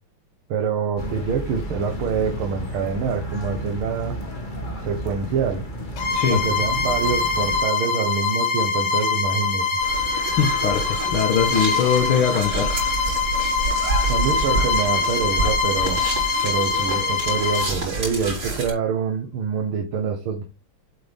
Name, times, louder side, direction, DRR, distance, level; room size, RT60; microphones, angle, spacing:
voice 1, 0.5-4.2 4.8-5.6 6.3-9.7 14.1-16.0 16.4-20.4, right 6 dB, 80° right, 2.1 m, -26 dB
sound 1, 1.0-7.6, equal, 25° left, 1.7 m, -32 dB
Bowed string instrument, 6.0-17.8, left 4 dB, 55° left, 1.9 m, -23 dB
sound 2, 9.8-18.7, right 2 dB, 55° right, 4.7 m, -28 dB
voice 2, 10.4-13.0, left 7 dB, 75° left, 2.2 m, -22 dB
7.9 x 7.8 x 3.5 m
omnidirectional pair, 2.3 m